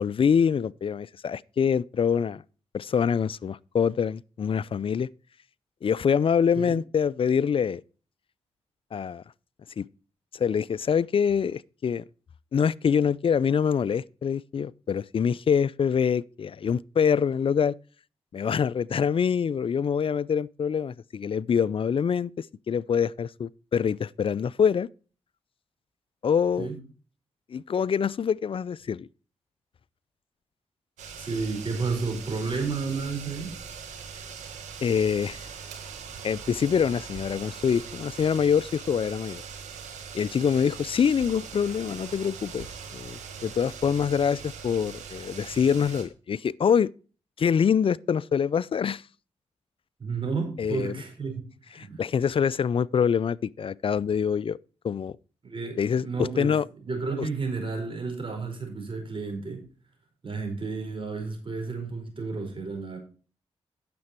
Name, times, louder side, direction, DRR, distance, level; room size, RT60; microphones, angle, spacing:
voice 1, 0.0-2.4 2.7-5.1 5.8-7.8 8.9-9.2 9.8-9.9 10.3-12.0 12.5-17.7 18.3-24.9 26.2-26.7 27.5-29.1 34.8-35.5 36.2-39.4 40.1-42.7 42.9-46.9 47.4-49.0 50.6-50.9 51.8-54.6 54.8-55.1 55.8-56.6 57.2-57.3, left 7 dB, 50° left, 0.4 m, -25 dB
sound 1, 31.0-46.0, right 6 dB, 90° right, 1.7 m, -41 dB
voice 2, 31.2-33.5 50.0-52.0 55.4-56.6 56.9-59.6 60.2-63.0, right 4 dB, 45° right, 4.6 m, -32 dB
9.5 x 6.9 x 4.3 m
supercardioid pair, 45°, 12 cm